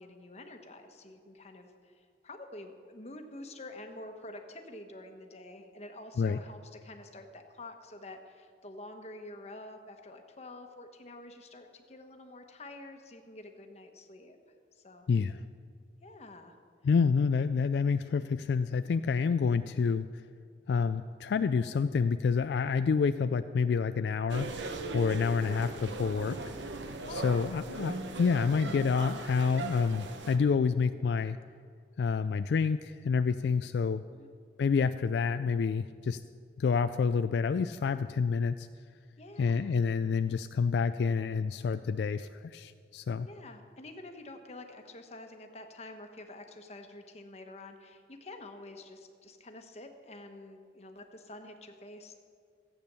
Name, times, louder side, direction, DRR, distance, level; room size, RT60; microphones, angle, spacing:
voice 1, 0.0-14.4 14.7-15.1 16.0-16.6 25.4-25.5 27.1-27.6 34.1-34.3 39.2-39.7 43.2-52.1, left 2 dB, 35° left, 5 dB, 1.1 m, -48 dB
voice 2, 15.1-15.4 16.8-20.1 20.7-24.5 24.9-26.4 27.1-31.4 32.0-34.0 34.6-36.2 36.6-38.7 39.4-43.3, left 5 dB, 70° left, 11 dB, 0.3 m, -28 dB
sound 1, 24.3-30.4, right 2 dB, 90° right, 1.0 m, -39 dB
14.5 x 8.6 x 6.8 m, 2.2 s
head